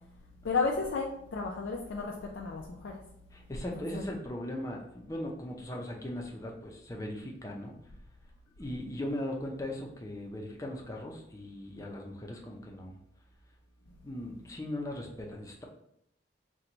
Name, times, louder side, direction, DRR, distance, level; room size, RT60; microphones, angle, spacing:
voice 1, 0.4-3.0 3.9-4.0, left 4 dB, 80° left, -1 dB, 0.5 m, -33 dB
voice 2, 3.3-7.7 8.6-13.0 14.0-15.6, left 1 dB, 15° left, 0 dB, 0.6 m, -38 dB
4.4 x 2.3 x 3.9 m, 0.73 s
head